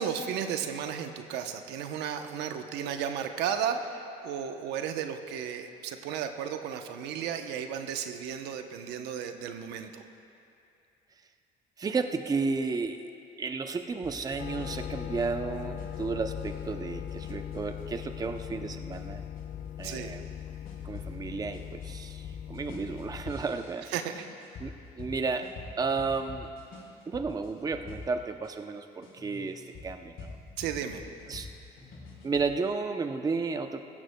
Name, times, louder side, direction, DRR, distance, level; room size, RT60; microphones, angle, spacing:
voice 1, 0.0-10.0 19.8-20.2 23.9-24.3 30.6-31.0, right 8 dB, 90° right, 6 dB, 0.8 m, -34 dB
voice 2, 11.8-13.1 13.4-19.2 19.8-20.3 20.8-23.9 24.6-25.5 25.8-26.5 27.1-30.4 31.3-31.5 32.2-33.9, right 4 dB, 20° right, 7 dB, 0.6 m, -33 dB
sound 1, 14.0-28.5 29.0-32.5, left 4 dB, 65° left, 3.5 m, -47 dB
sound 2, 14.4-23.3, left 10 dB, 45° left, 0.4 m, -40 dB
17.5 x 16.0 x 2.2 m, 2.5 s
cardioid pair, 110°, 17 cm